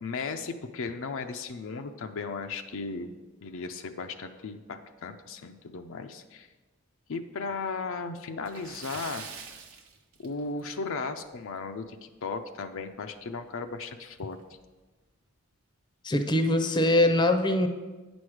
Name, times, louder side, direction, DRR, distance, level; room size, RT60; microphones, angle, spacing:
voice 1, 0.0-3.2 3.4-6.5 7.1-9.2 10.2-14.4, left 4 dB, 65° left, 6 dB, 0.5 m, -36 dB
Splash splatter, 8.4-10.8 11.1-11.3 11.7-11.8 13.2-13.3 13.7-13.8 14.4-14.6, right 6 dB, 80° right, 1.0 m, -44 dB
voice 2, 16.0-17.7, left 1 dB, 20° left, 6 dB, 0.6 m, -23 dB
9.3 x 6.2 x 4.8 m, 1.2 s
head